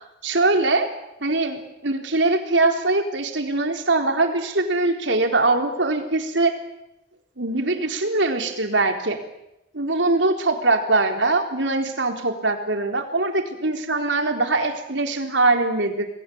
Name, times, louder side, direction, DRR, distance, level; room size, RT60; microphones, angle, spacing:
voice 1, 0.2-0.9 1.2-6.6 7.4-9.2 9.7-16.1, right 2 dB, 85° right, 4 dB, 3.9 m, -22 dB
28.0 x 20.5 x 8.7 m, 0.87 s
head